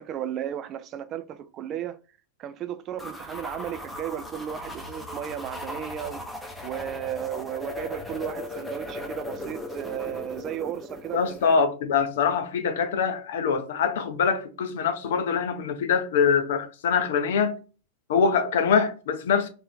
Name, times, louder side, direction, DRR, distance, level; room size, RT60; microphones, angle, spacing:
voice 1, 0.0-2.0 2.4-6.3 6.6-11.6, right 10 dB, 35° right, 0.3 m, -34 dB
sound 1, 3.0-11.6, left 1 dB, 5° left, 0.7 m, -37 dB
voice 2, 11.1-17.6 18.1-19.5, left 6 dB, 55° left, 0.5 m, -24 dB
3.1 x 2.6 x 3.5 m
figure-of-eight pair, 90°, 0 cm